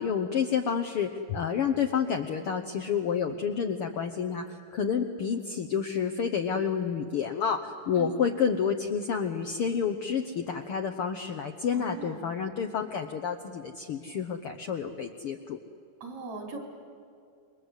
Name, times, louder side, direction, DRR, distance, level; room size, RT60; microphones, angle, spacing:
voice 1, 0.0-15.6, left 7 dB, 65° left, 5 dB, 1.5 m, -29 dB
voice 2, 11.7-12.2 16.0-16.6, right 3 dB, 55° right, 2 dB, 5.3 m, -39 dB
28.5 x 23.5 x 8.1 m, 2.5 s
omnidirectional pair, 3.5 m